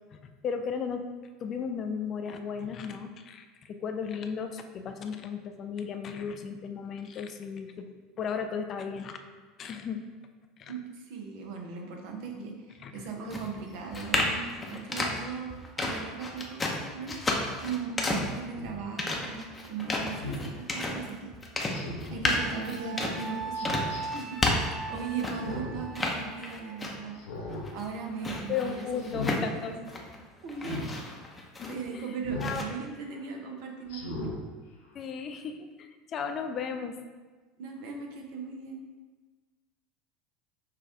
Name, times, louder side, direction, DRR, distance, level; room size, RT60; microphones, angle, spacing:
voice 1, 0.4-1.1 1.4-7.9 8.2-9.2 9.6-10.0 10.6-10.7 12.4-12.5 12.8-13.1 24.9-25.0 28.5-29.8 31.6-32.2 32.4-32.7 34.9-37.0, left 6 dB, 40° left, 7 dB, 0.4 m, -35 dB
voice 2, 10.7-17.2 17.6-21.3 22.1-23.9 24.1-27.2 27.7-29.9 30.4-30.8 31.7-34.4 37.6-38.8, right 5 dB, 60° right, 2 dB, 0.7 m, -38 dB
sound 1, 13.3-25.6 25.9-27.2 27.5-30.2 30.5-32.0 32.4-32.6, left 2 dB, 20° left, 0.7 m, -32 dB
Speech synthesizer, 18.5-18.7 20.2-20.5 21.7-22.2 23.5-24.0 25.3-25.8 26.2-26.3 27.1-27.7 28.0-28.3 29.0-29.4 30.6-30.9 32.2-32.6 33.1-33.2 33.9-34.4 34.8-34.9, left 2 dB, 70° left, 0.8 m, -37 dB
Wind instrument woodwind instrument, 22.4-26.7, right 3 dB, 15° right, 0.5 m, -39 dB
5.8 x 2.4 x 3.5 m, 1.3 s
figure-of-eight pair, 75°, 0 cm